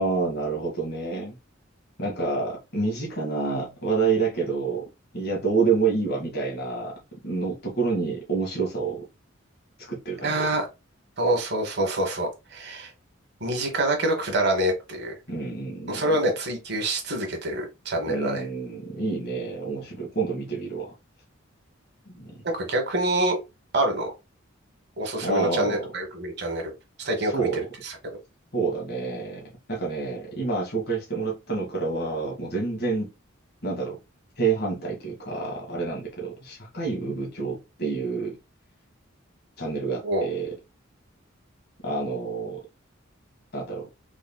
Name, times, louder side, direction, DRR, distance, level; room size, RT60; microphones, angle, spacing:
voice 1, 0.0-1.3 2.0-4.9 5.1-6.9 7.2-9.0 9.9-10.5 15.3-16.2 18.1-20.9 22.1-22.4 25.2-25.8 27.2-27.7 28.5-33.1 33.6-34.0 34.4-38.4 39.6-40.5 41.8-42.6 43.5-43.9, right 4 dB, 50° left, 1.5 m, -28 dB
voice 2, 10.2-10.7 11.2-12.9 13.4-15.2 15.9-18.4 22.6-23.4 23.7-24.1 25.0-26.6 27.0-27.5 27.8-28.0 40.0-40.2, right 1 dB, 55° right, 1.2 m, -26 dB
3.8 x 3.5 x 2.2 m
head